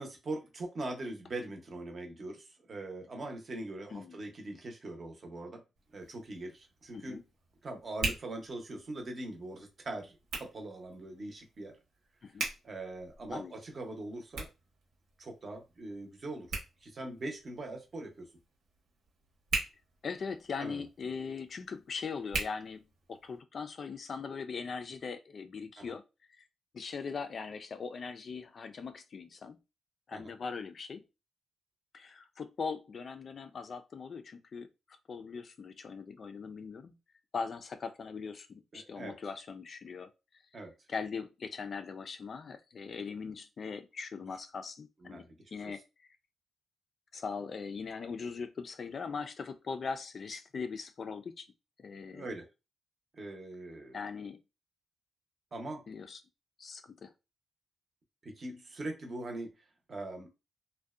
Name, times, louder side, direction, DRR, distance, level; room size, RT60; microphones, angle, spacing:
voice 1, 0.0-5.6 5.9-7.2 7.6-11.8 12.6-14.5 15.2-18.3 20.6-20.8 25.8-25.9 30.1-30.3 38.7-39.1 40.5-40.7 45.0-45.7 48.0-48.1 52.1-52.5 53.1-54.0 55.5-55.9 58.2-60.3, right 2 dB, 40° right, 3 dB, 0.7 m, -42 dB
Hands, 5.7-23.4, right 3 dB, 75° right, 1.0 m, -43 dB
voice 2, 20.0-26.0 26.7-29.6 30.1-31.0 31.9-37.0 37.3-40.1 40.9-45.2 45.5-46.2 47.1-51.5 51.8-52.3 53.9-54.4 55.9-56.2 56.6-57.1, left 5 dB, 45° left, 10 dB, 0.3 m, -40 dB
2.6 x 2.1 x 2.3 m, 0.27 s
cardioid pair, 120°, 0 cm